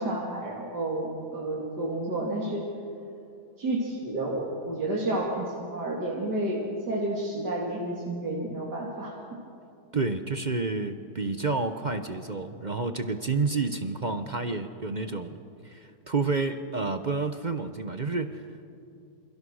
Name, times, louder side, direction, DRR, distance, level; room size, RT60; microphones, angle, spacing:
voice 1, 0.0-2.6 3.6-9.2 9.9-10.0, right 1 dB, 70° right, -4 dB, 3.6 m, -30 dB
voice 2, 9.9-15.4 15.6-18.5, right 3 dB, 35° right, 9 dB, 0.8 m, -29 dB
28.0 x 27.5 x 6.4 m, 2.6 s
omnidirectional pair, 1.8 m